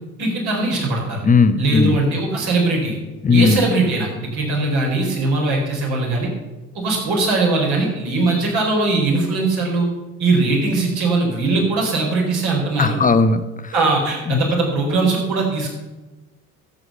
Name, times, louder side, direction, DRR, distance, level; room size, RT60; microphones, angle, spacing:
voice 1, 0.2-1.2 1.6-3.0 3.3-6.3 6.7-9.9 10.2-13.0 13.7-15.7, right 3 dB, 55° right, -1 dB, 4.8 m, -20 dB
voice 2, 1.2-2.0 3.2-3.6 12.8-13.7 14.3-14.4, left 4 dB, 20° left, 10 dB, 1.0 m, -16 dB
12.5 x 8.2 x 6.9 m, 1.1 s
figure-of-eight pair, 60°, 45 cm